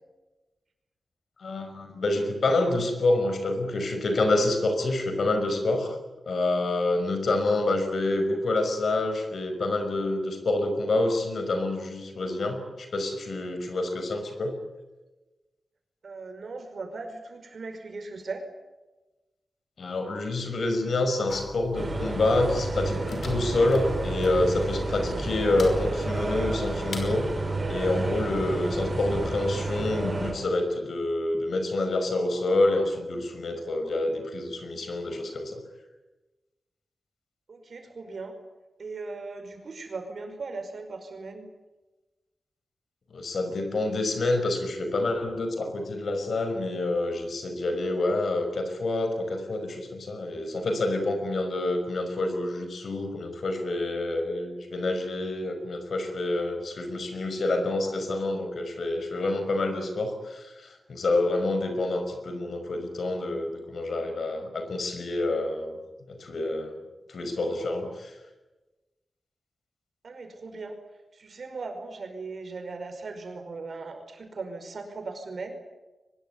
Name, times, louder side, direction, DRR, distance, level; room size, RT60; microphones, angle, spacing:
voice 1, 1.4-6.0 6.3-14.6 19.8-27.3 27.7-35.6 43.1-65.8 66.1-66.8 67.1-68.1, left 2 dB, 65° left, 7 dB, 5.6 m, -27 dB
voice 2, 16.0-18.5 37.5-38.4 38.8-41.5 70.0-70.8 71.1-75.5, right 3 dB, 55° right, 6 dB, 5.2 m, -38 dB
sound 1, 21.3-27.4, left 3 dB, 50° left, 5.4 m, -43 dB
sound 2, 21.7-30.3, right 2 dB, 25° right, 7.8 m, -30 dB
23.5 x 21.0 x 9.8 m, 1.1 s
wide cardioid pair, 170°, 0 cm